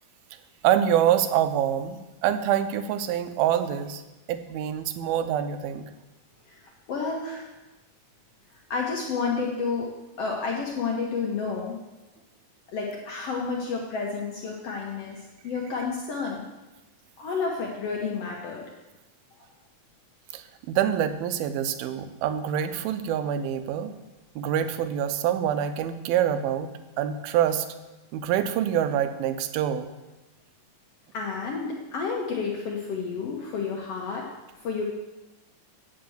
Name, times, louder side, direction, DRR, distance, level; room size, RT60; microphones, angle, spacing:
voice 1, 0.6-4.0 4.3-5.9 20.3-23.9 24.4-26.7 27.0-27.7 28.1-29.9, right 10 dB, 85° right, 10 dB, 2.5 m, -26 dB
voice 2, 6.5-7.5 8.7-9.9 10.2-11.8 12.7-16.4 17.2-18.6 31.1-34.3 34.6-34.8, left 5 dB, 80° left, -1 dB, 1.3 m, -30 dB
8.4 x 5.9 x 7.7 m, 1.1 s
omnidirectional pair, 4.3 m